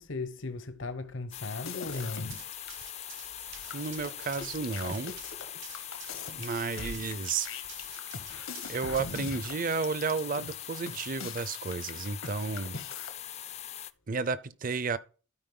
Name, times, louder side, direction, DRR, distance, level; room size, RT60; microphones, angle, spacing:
voice 1, 0.0-2.5, left 3 dB, 65° left, 0.8 m, -37 dB
sound 1, 1.3-13.9, left 11 dB, 35° left, 0.4 m, -42 dB
sound 2, 1.6-2.7 3.0-3.1 3.4-12.3 12.6-13.1, left 4 dB, 85° left, 1.3 m, -41 dB
Run, 1.9-9.2, right 9 dB, 65° right, 1.1 m, -51 dB
voice 2, 3.7-5.2 6.4-7.5 8.7-12.8 14.1-15.0, right 4 dB, 40° right, 0.5 m, -32 dB
13.0 x 4.8 x 3.8 m
head